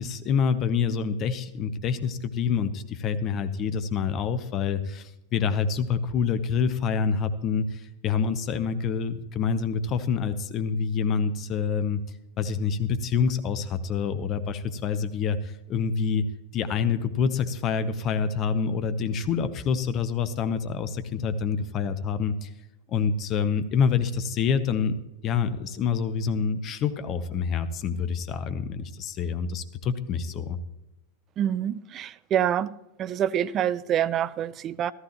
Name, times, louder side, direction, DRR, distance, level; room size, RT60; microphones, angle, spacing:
voice 1, 0.0-12.0 12.4-16.2 16.5-22.5 22.9-25.0 25.2-30.6, left 6 dB, 35° left, 0.8 m, -27 dB
voice 2, 31.4-32.7 33.0-34.9, right 10 dB, 30° right, 0.4 m, -26 dB
14.5 x 13.5 x 3.0 m
figure-of-eight pair, 90°, 0 cm